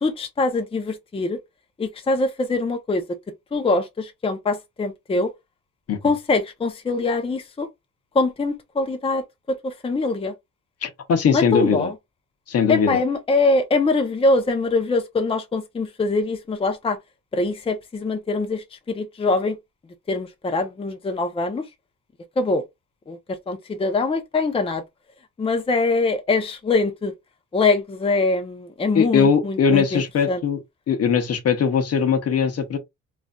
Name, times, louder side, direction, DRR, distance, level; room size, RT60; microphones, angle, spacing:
voice 1, 0.0-1.4 1.8-3.0 3.5-5.3 6.0-7.7 8.1-10.3 11.3-11.9 12.7-17.0 17.3-19.6 20.1-21.6 22.4-22.6 23.1-23.2 23.5-24.8 25.4-27.1 27.5-30.0 30.3-30.4, left 3 dB, 20° left, 0.6 m, -23 dB
voice 2, 10.8-11.9 12.5-13.0 28.9-30.6 30.9-32.8, left 6 dB, 55° left, 0.8 m, -20 dB
3.1 x 2.6 x 2.2 m
cardioid pair, 90°, 30 cm